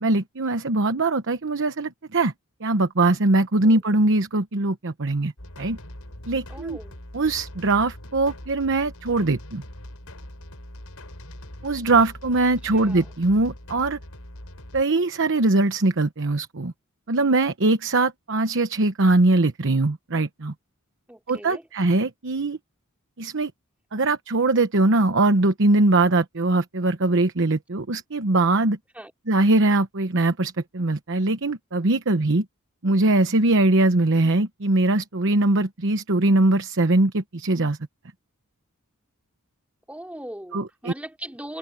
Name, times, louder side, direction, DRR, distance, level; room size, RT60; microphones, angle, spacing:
voice 1, 0.0-2.3 2.6-5.3 5.6-5.8 6.3-6.8 7.1-9.6 11.6-14.0 14.7-16.7 17.1-20.5 21.3-22.6 23.2-23.5 23.9-28.8 29.3-32.4 32.8-37.8 40.5-40.9, right 2 dB, 60° right, 1.0 m, -21 dB
sound 1, 5.4-14.8, left 1 dB, 75° left, 5.1 m, -42 dB
voice 2, 6.5-7.0 12.7-13.1 21.1-21.7 28.9-29.1 39.9-41.6, right 1 dB, 5° right, 4.5 m, -39 dB
open air
head